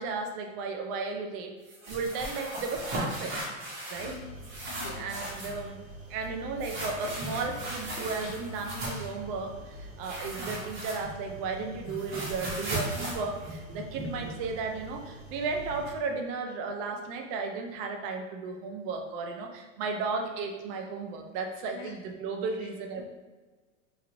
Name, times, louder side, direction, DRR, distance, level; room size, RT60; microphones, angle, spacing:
voice 1, 0.0-1.5 1.9-3.5 3.9-4.2 5.0-5.8 6.1-23.0, right 4 dB, 45° right, 3 dB, 0.5 m, -34 dB
sound 1, 1.7-4.2 4.4-5.6 6.6-9.1 10.0-11.3 11.6-14.3, right 1 dB, 30° right, 0.9 m, -37 dB
sound 2, 3.9-15.9, right 2 dB, 75° right, 1.2 m, -45 dB
voice 2, 4.0-5.2 12.1-12.3 21.7-22.0 22.6-22.7, left 5 dB, 35° left, 1 dB, 0.5 m, -46 dB
3.1 x 2.8 x 2.5 m, 1.3 s
supercardioid pair, 135°, 40 cm